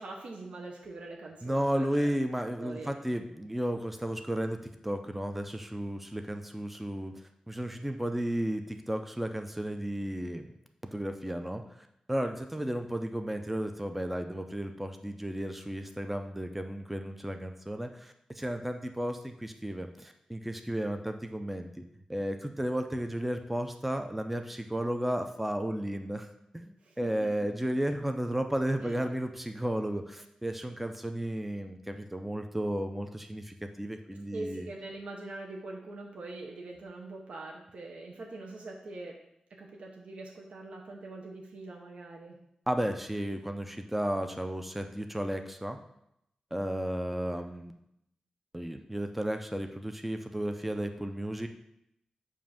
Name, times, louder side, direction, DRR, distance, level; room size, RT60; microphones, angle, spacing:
voice 1, 0.0-2.1 2.6-2.9 26.8-27.3 28.8-28.9 34.3-39.2 39.5-42.4, right 2 dB, 70° right, 0 dB, 0.8 m, -43 dB
voice 2, 1.4-4.6 4.8-10.5 10.8-21.8 22.1-26.3 26.5-34.7 42.7-45.8 46.5-47.7 48.5-51.5, right 1 dB, 5° right, 6 dB, 0.4 m, -33 dB
7.3 x 2.6 x 5.6 m, 0.78 s
wide cardioid pair, 165°, 2 cm